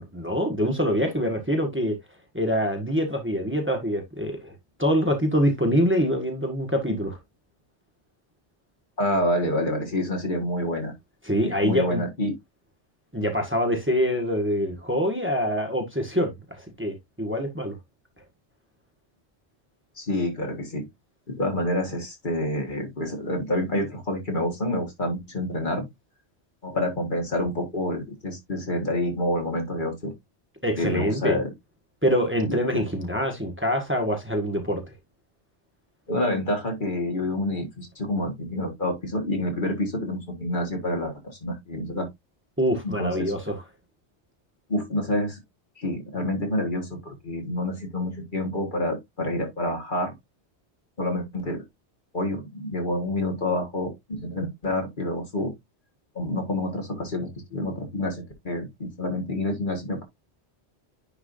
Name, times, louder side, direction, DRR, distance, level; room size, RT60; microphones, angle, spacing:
voice 1, 0.0-2.0 2.3-4.5 4.8-7.2 11.2-12.0 13.1-17.8 30.6-31.4 32.0-34.9 42.6-43.6, equal, 10° right, 1.7 m, -25 dB
voice 2, 9.0-10.9 11.4-12.3 20.0-20.9 21.3-25.9 26.6-30.1 30.8-31.5 32.5-32.8 36.1-42.1 42.8-43.3 44.7-45.4 45.8-50.1 51.0-51.7 52.1-55.5 56.2-60.0, left 1 dB, 45° left, 1.9 m, -28 dB
10.0 x 4.8 x 2.6 m
omnidirectional pair, 1.1 m